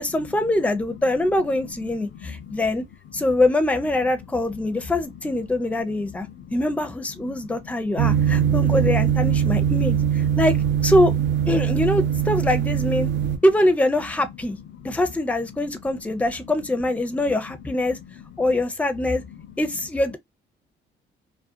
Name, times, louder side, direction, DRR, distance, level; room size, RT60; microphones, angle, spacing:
voice 1, 0.0-2.8 3.1-6.3 6.5-10.0 10.4-10.6 10.8-11.1 11.5-13.1 13.4-14.6 14.8-18.0 18.4-19.2 19.6-20.2, left 1 dB, 5° left, 0.5 m, -23 dB
voice 2, 1.6-2.7 3.1-3.4 4.2-4.9 5.8-6.5 7.2-8.6 9.2-9.4 10.3-10.4 11.6-11.7 13.0-13.4 14.5-15.0 15.4-15.5 17.2-17.6 17.9-18.6 19.3-19.5, left 8 dB, 65° left, 0.5 m, -43 dB
sound 1, 8.0-13.4, right 9 dB, 65° right, 0.6 m, -21 dB
2.4 x 2.1 x 2.6 m
cardioid pair, 90°, 20 cm